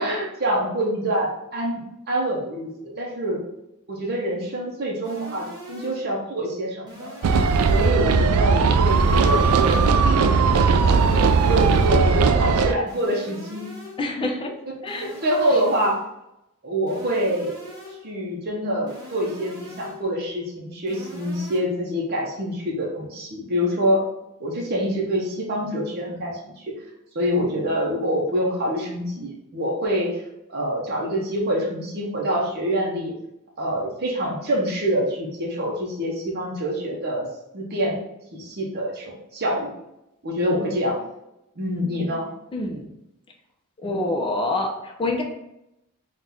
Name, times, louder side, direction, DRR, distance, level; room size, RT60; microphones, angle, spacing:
voice 1, 0.0-3.4 3.9-7.1 7.7-11.1 11.4-13.7 15.0-16.0 16.6-17.6 18.0-24.0 24.4-26.7 27.1-30.1 30.5-33.1 33.6-37.3 37.5-38.0 38.3-39.7 40.2-41.0 41.6-42.3 43.8-44.1, equal, 45° right, -2 dB, 0.8 m, -26 dB
sound 1, 5.0-6.1 6.9-8.1 8.9-10.1 10.9-12.1 12.9-14.1 14.9-16.1 16.9-18.1 18.9-20.1 20.9-21.6, left 1 dB, 20° right, 1.1 m, -42 dB
sound 2, 7.2-12.7, right 4 dB, 75° right, 0.3 m, -18 dB
voice 2, 14.0-14.5 14.8-15.1 15.5-15.6 42.5-42.9 43.8-45.2, left 2 dB, 25° left, 1 dB, 0.6 m, -26 dB
3.8 x 2.4 x 4.2 m, 0.86 s
head